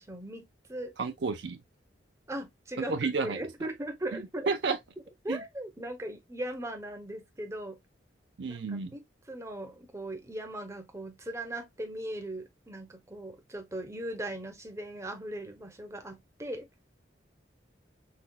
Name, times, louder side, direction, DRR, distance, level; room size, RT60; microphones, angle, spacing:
voice 1, 0.0-0.9 2.3-3.0 3.2-4.5 5.2-7.8 8.5-16.7, right 1 dB, 15° right, 0.7 m, -39 dB
voice 2, 1.0-1.6 2.9-3.4 4.1-4.8 5.3-5.4 8.4-8.9, right 4 dB, 65° right, 0.6 m, -31 dB
5.8 x 2.3 x 2.3 m
head